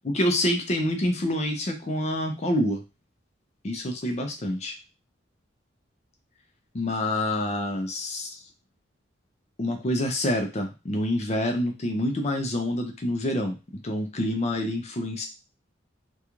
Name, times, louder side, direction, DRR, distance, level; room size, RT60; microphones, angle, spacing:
voice 1, 0.0-2.8 3.6-4.7 6.7-8.4 9.6-15.3, left 1 dB, 35° left, 4 dB, 0.4 m, -27 dB
2.4 x 2.2 x 2.9 m, 0.28 s
head